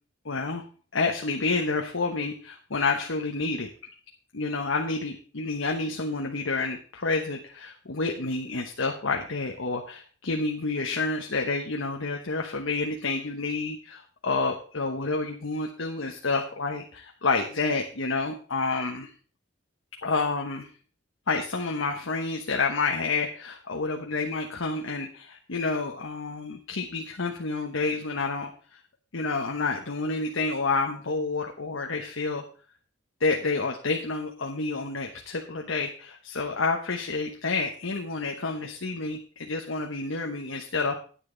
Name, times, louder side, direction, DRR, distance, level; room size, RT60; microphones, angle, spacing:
voice 1, 0.2-0.6 0.9-3.7 4.3-19.1 20.0-20.7 21.3-28.5 29.1-32.4 33.2-41.0, left 3 dB, 80° left, 2 dB, 1.1 m, -29 dB
10.0 x 9.5 x 3.9 m, 0.40 s
head